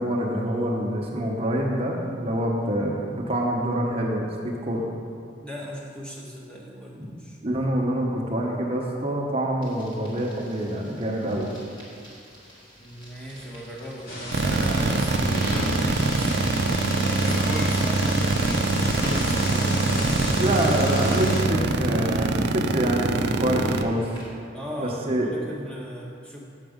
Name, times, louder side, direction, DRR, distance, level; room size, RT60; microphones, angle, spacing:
voice 1, 0.0-4.9 7.0-7.1 7.4-11.5 20.4-24.1 24.8-25.3, right 1 dB, 30° right, -1 dB, 1.0 m, -26 dB
voice 2, 5.4-7.4 12.8-16.3 17.0-20.5 24.5-26.4, equal, 5° left, -4 dB, 1.2 m, -37 dB
sound 1, 9.6-24.3, equal, 25° left, 2.0 m, -42 dB
sound 2, 14.1-21.4, left 1 dB, 50° left, 1.5 m, -32 dB
sound 3, 14.3-23.8, right 3 dB, 65° right, 0.5 m, -23 dB
7.3 x 7.1 x 5.1 m, 2.3 s
head